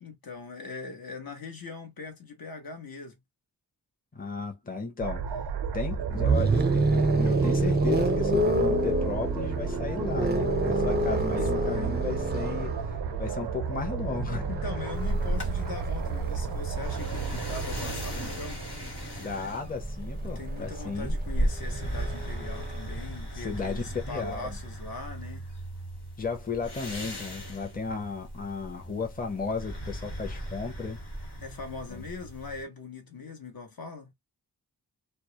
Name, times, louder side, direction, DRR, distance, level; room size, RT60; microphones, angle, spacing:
voice 1, 0.0-3.2 11.5-11.9 14.5-18.7 20.2-25.5 31.4-34.1, left 4 dB, 65° left, 0.8 m, -41 dB
voice 2, 4.1-5.4 5.7-14.5 19.2-21.2 23.3-24.6 26.2-31.0 31.9-32.0, left 4 dB, 25° left, 0.6 m, -34 dB
sound 1, 5.0-19.3, right 6 dB, 85° right, 0.5 m, -33 dB
sound 2, 6.0-18.0 19.2-22.8, right 2 dB, 25° right, 0.4 m, -29 dB
sound 3, 14.9-32.6, right 1 dB, 85° left, 1.3 m, -36 dB
2.2 x 2.0 x 2.8 m
wide cardioid pair, 85°, 39 cm